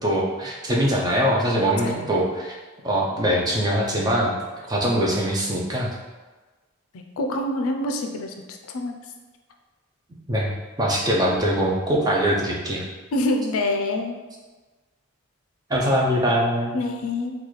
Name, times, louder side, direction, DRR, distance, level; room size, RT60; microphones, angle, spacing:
voice 1, 0.0-2.6 2.8-4.3 4.7-5.9 10.3-12.8 15.7-16.8, equal, 20° right, -3 dB, 0.4 m, -22 dB
voice 2, 1.7-2.1 7.2-8.9 13.1-14.2 16.7-17.3, left 2 dB, 80° left, 4 dB, 0.4 m, -26 dB
3.9 x 2.3 x 3.1 m, 1.3 s
head